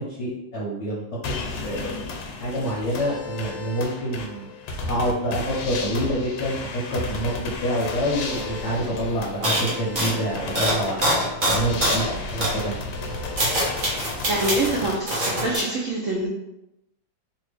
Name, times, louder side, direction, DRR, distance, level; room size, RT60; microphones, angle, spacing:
voice 1, 0.1-4.5 4.9-11.0 11.5-12.8, equal, 55° left, -6 dB, 0.9 m, -27 dB
sound 1, 1.2-15.0, left 3 dB, 90° left, 1.3 m, -33 dB
sound 2, 8.3-8.4 8.6-8.9 9.4-12.1 12.4-12.6 13.1-14.7 15.1-15.6, equal, 35° right, 1.0 m, -24 dB
voice 2, 14.0-16.3, right 2 dB, 75° right, -2 dB, 0.7 m, -25 dB
3.3 x 2.5 x 3.3 m, 0.88 s
omnidirectional pair, 2.0 m